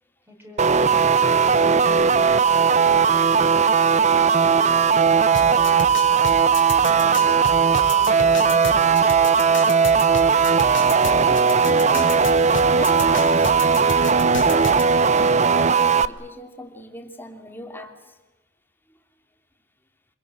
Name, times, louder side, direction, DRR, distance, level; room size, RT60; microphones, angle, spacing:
voice 1, 0.3-1.7 2.5-6.2 6.9-9.2, left 1 dB, 10° right, 0 dB, 6.1 m, -43 dB
sound 1, 0.6-16.1, right 6 dB, 40° right, 0.7 m, -18 dB
sound 2, 5.3-14.8, left 4 dB, 85° left, 2.8 m, -31 dB
sound 3, 7.2-12.1, right 4 dB, 75° right, 6.1 m, -44 dB
voice 2, 11.0-12.2 12.8-14.1 14.4-14.7 15.1-18.2 18.9-19.0, left 1 dB, 10° left, 5 dB, 2.7 m, -38 dB
26.5 x 22.0 x 7.8 m, 1.2 s
head